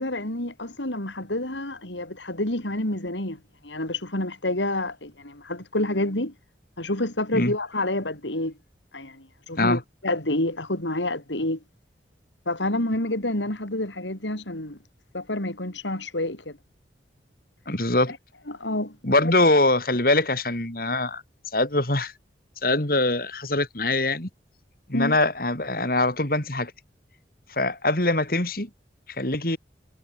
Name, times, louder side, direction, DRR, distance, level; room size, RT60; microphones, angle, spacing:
voice 1, 0.0-6.3 6.8-8.5 8.9-11.6 12.5-14.8 15.1-16.6 18.5-18.9 19.2-19.3 24.9-25.2, left 1 dB, 85° left, 4.9 m, -28 dB
voice 2, 17.7-18.1 19.0-21.2 21.5-22.1 22.6-24.3 24.9-26.7 27.5-28.7 29.2-29.6, left 2 dB, 50° left, 3.9 m, -23 dB
head